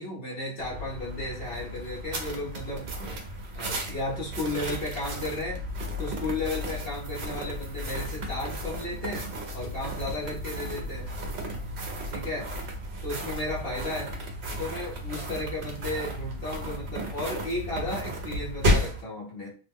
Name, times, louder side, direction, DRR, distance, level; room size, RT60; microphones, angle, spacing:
voice 1, 0.0-3.2 3.5-5.6 6.0-9.3 9.5-11.1 12.1-12.4 13.0-14.2 14.6-19.5, left 2 dB, 60° left, -5 dB, 1.1 m, -34 dB
sound 1, 0.6-19.0, equal, 65° right, 1.0 m, -33 dB
2.8 x 2.1 x 3.4 m, 0.39 s
omnidirectional pair, 1.2 m